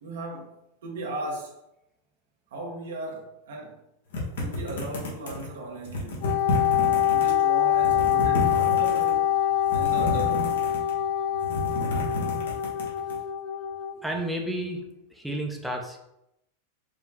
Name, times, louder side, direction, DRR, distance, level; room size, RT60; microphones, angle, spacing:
voice 1, 0.0-0.6 0.8-1.6 2.5-3.8 4.4-6.3 7.1-9.4 9.7-10.5, right 1 dB, 75° right, 1.2 m, -36 dB
sound 1, 4.1-5.5 5.8-7.3 7.7-9.1 9.6-11.0 11.3-13.1, left 2 dB, 85° left, 1.3 m, -31 dB
Wind instrument woodwind instrument, 6.2-13.9, left 11 dB, 55° left, 0.3 m, -24 dB
voice 2, 13.9-14.8 15.1-16.0, right 1 dB, ahead, 0.6 m, -31 dB
5.0 x 2.3 x 3.5 m
hypercardioid pair, 120°, 0 cm